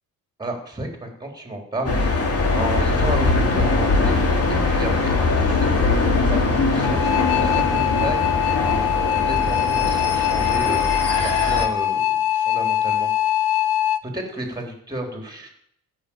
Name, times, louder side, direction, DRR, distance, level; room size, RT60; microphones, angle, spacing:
voice 1, 0.4-12.0 12.3-13.6 14.0-15.5, right 1 dB, 10° right, 3 dB, 3.6 m, -32 dB
sound 1, 1.8-11.6, left 3 dB, 40° left, 2.9 m, -21 dB
sound 2, 6.8-14.0, left 11 dB, 80° left, 0.9 m, -22 dB
15.0 x 6.4 x 8.7 m, 0.72 s
cardioid pair, 125°, 37 cm